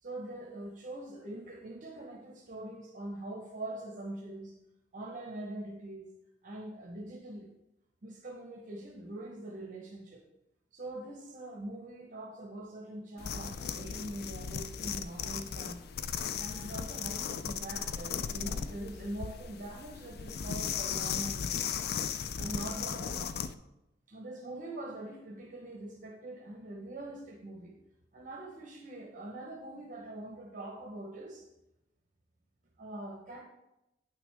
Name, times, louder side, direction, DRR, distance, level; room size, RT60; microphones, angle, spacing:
voice 1, 0.0-4.6 4.9-6.1 6.4-7.5 8.0-10.2 10.7-15.9 16.4-21.9 22.4-23.3 24.1-27.8 28.1-31.5 32.8-33.4, right 1 dB, 45° right, 1 dB, 0.9 m, -43 dB
sound 1, 13.2-23.5, left 7 dB, 60° left, 0.4 m, -36 dB
9.0 x 5.9 x 3.4 m, 0.92 s
head